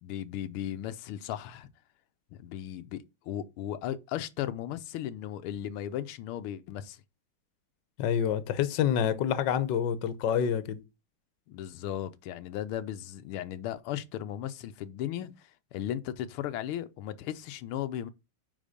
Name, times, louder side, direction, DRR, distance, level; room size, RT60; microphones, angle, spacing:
voice 1, 0.0-1.7 2.4-7.0 11.5-18.1, left 11 dB, 90° left, 1.6 m, -36 dB
voice 2, 8.0-10.8, left 8 dB, 65° left, 1.4 m, -27 dB
9.0 x 4.2 x 5.1 m
omnidirectional pair, 2.3 m